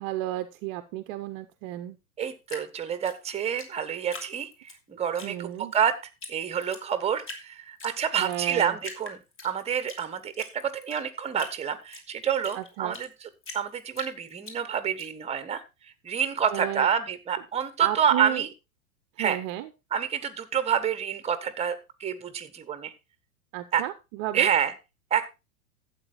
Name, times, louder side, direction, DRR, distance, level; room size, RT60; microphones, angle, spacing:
voice 1, 0.0-2.0 5.2-5.7 8.2-8.8 12.5-13.0 16.5-16.9 17.8-18.4 19.2-19.7 23.5-24.5, right 14 dB, 35° right, 11 dB, 0.8 m, -32 dB
voice 2, 2.2-5.9 6.3-9.2 9.4-13.3 13.5-18.5 19.2-19.4 19.9-22.9 23.7-23.8 24.3-24.7 25.1-25.3, right 8 dB, 15° right, 13 dB, 1.2 m, -28 dB
Drip, 2.5-4.8 5.1-5.8 6.2-6.3 6.6-7.4 7.8-8.4 8.8-10.0 10.3-13.1 13.4-15.1, left 3 dB, 30° left, 2.8 m, -42 dB
12.0 x 8.3 x 4.1 m, 0.27 s
figure-of-eight pair, 95°, 44 cm